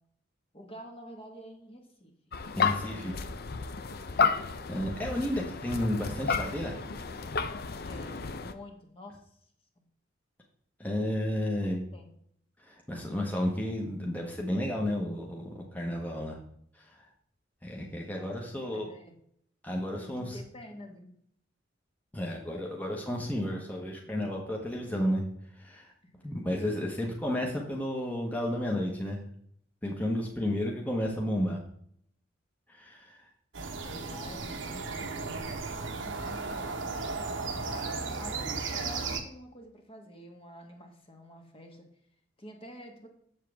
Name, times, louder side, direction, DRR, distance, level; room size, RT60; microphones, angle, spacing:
voice 1, 0.5-2.1 2.5-3.4 4.1-4.3 7.8-9.4 9.8-9.9 11.6-12.1 18.1-19.1 20.0-21.1 26.0-26.3 30.2-30.5 33.6-36.8 37.2-37.3 37.6-37.9 38.2-41.9 42.4-43.1, left 1 dB, 30° left, 3 dB, 1.5 m, -49 dB
sound 1, 2.3-8.5, left 5 dB, 55° left, 0.6 m, -32 dB
voice 2, 2.5-3.1 4.7-6.7 10.8-11.8 12.7-16.4 16.8-17.0 17.6-18.9 19.6-20.4 22.1-25.2 25.6-25.9 26.2-29.2 29.8-31.6 32.7-33.3, left 1 dB, 10° left, -1 dB, 1.2 m, -32 dB
sound 2, 33.5-39.2, right 4 dB, 85° right, 1.2 m, -35 dB
7.5 x 7.3 x 3.5 m, 0.67 s
head